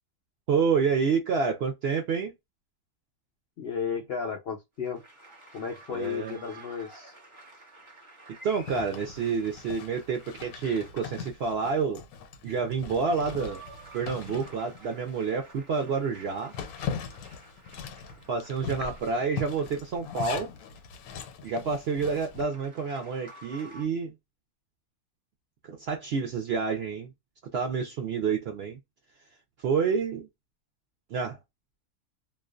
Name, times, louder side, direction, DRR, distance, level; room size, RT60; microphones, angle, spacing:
voice 1, 0.5-2.3 5.9-6.4 8.4-12.0 12.4-13.6 13.9-16.5 18.3-20.5 21.4-24.1 25.6-27.1 27.5-28.8 29.6-30.3 31.1-31.4, right 5 dB, 65° right, 0.6 m, -28 dB
voice 2, 3.6-5.0 5.5-7.1, left 6 dB, 60° left, 0.7 m, -33 dB
sound 1, 4.8-11.4 12.7-21.1 22.3-23.9, right 2 dB, 25° right, 0.7 m, -52 dB
Zipper (clothing), 8.6-15.3 15.7-15.8 16.2-22.4, left 7 dB, 80° left, 1.0 m, -40 dB
2.4 x 2.2 x 2.3 m
omnidirectional pair, 1.5 m